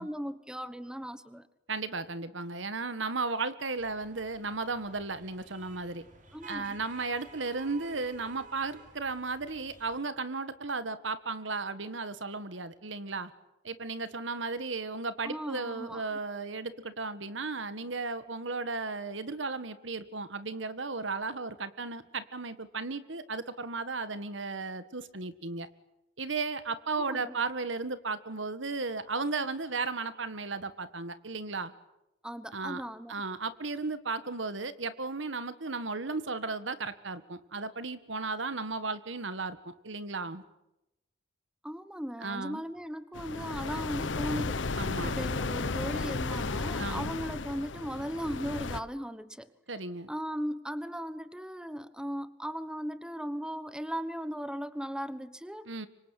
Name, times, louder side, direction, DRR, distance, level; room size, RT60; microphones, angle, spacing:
voice 1, 0.0-1.5 6.3-6.8 15.2-16.2 27.0-27.4 32.2-33.2 41.6-44.6 45.0-49.5 50.1-55.7, equal, 5° right, 13 dB, 1.2 m, -37 dB
voice 2, 1.7-6.0 6.5-13.3 13.6-25.7 26.2-31.7 32.5-32.8 33.1-40.4 42.2-42.6 44.8-45.2 46.8-47.1 49.7-50.1 55.7-55.9, right 3 dB, 75° right, 13 dB, 1.8 m, -35 dB
sound 1, 3.8-10.0, right 4 dB, 40° right, 3.9 m, -53 dB
sound 2, 43.1-48.8, left 3 dB, 70° left, 1.0 m, -34 dB
25.0 x 25.0 x 9.3 m, 0.91 s
head